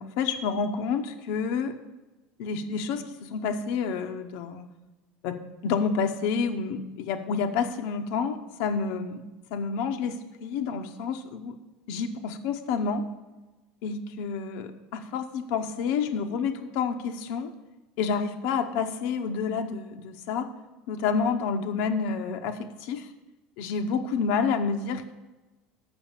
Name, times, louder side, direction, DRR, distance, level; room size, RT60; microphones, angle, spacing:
voice 1, 0.0-1.7 2.4-4.6 5.2-5.4 5.6-9.2 9.5-11.5 11.9-13.1 13.8-17.5 18.0-20.5 20.9-23.1 23.6-25.1, left 5 dB, 65° left, 5 dB, 0.7 m, -29 dB
6.9 x 5.9 x 7.3 m, 1.1 s
cardioid pair, 175°, 3 cm